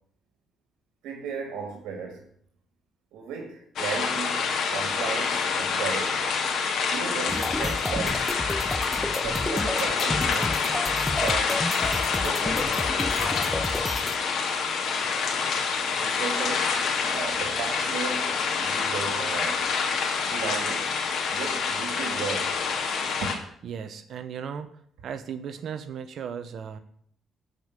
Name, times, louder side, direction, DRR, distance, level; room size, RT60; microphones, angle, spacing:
voice 1, 1.0-2.3 3.1-6.3 6.9-8.4 9.2-10.6 11.2-11.6 12.2-12.8 16.0-16.8 17.1-19.7 20.3-20.9 21.3-22.6 23.2-23.4, right 6 dB, 90° right, 2.2 m, -35 dB
sound 1, 3.8-23.3, left 5 dB, 70° left, 2.4 m, -27 dB
sound 2, 7.3-14.2, left 1 dB, 10° left, 0.7 m, -31 dB
voice 2, 23.6-24.7 25.0-26.8, right 7 dB, 65° right, 0.9 m, -36 dB
13.0 x 5.3 x 8.2 m
cardioid pair, 90°, 0 cm